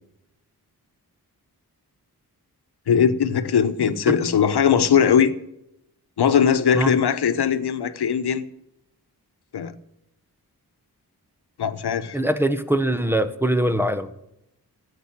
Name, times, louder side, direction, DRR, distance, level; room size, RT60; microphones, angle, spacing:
voice 1, 2.9-5.3 6.2-8.4 9.5-9.7 11.6-12.2, left 7 dB, 90° left, 11 dB, 1.1 m, -20 dB
voice 2, 12.1-14.1, right 1 dB, 5° right, 10 dB, 1.2 m, -22 dB
15.0 x 8.5 x 8.8 m, 0.83 s
wide cardioid pair, 80°, 38 cm